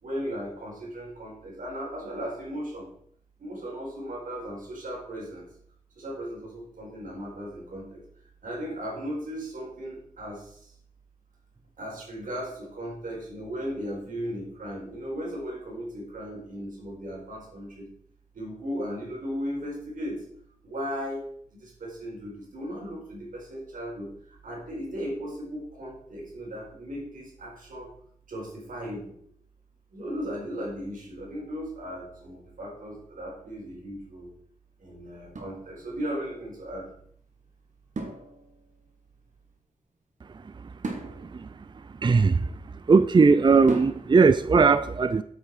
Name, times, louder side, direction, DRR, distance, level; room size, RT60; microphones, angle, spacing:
voice 1, 0.0-2.9 3.4-5.5 6.0-8.0 8.4-10.7 11.8-17.9 18.3-20.2 20.6-21.2 21.5-27.9 28.3-29.1 29.9-34.3 34.8-36.9, equal, 85° right, 4.7 m, -36 dB
sound 1, 35.3-36.3 37.9-38.9 40.8-42.8 43.7-44.4, right 3 dB, 65° right, 2.1 m, -37 dB
voice 2, 42.0-42.4 42.9-45.2, right 4 dB, 35° right, 0.4 m, -18 dB
8.9 x 8.2 x 4.8 m
wide cardioid pair, 70°, 13 cm